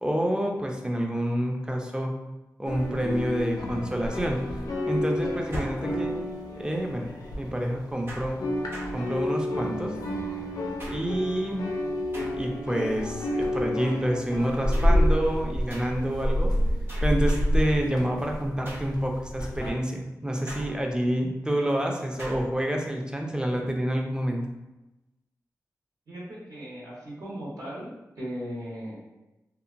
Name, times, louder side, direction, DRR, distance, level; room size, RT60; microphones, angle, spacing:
voice 1, 0.0-2.1 2.6-4.4 4.9-6.2 6.6-7.1 7.4-8.4 8.9-10.0 10.9-11.7 12.3-16.5 17.0-24.5, equal, 10° right, 1 dB, 0.5 m, -28 dB
sound 1, 2.7-8.0 8.2-19.7, equal, 85° left, 0.5 m, -29 dB
sound 2, 5.5-6.4 8.1-9.6 10.8-11.4 12.1-12.8 14.7-15.1 15.7-16.1 16.9-17.7 18.7-19.1 20.5-21.1 22.2-22.6, right 1 dB, 35° right, 0.8 m, -42 dB
voice 2, 26.1-27.9 28.2-29.2, equal, 65° right, -7 dB, 0.9 m, -37 dB
2.8 x 2.1 x 2.5 m, 1.0 s
cardioid pair, 45°, 6 cm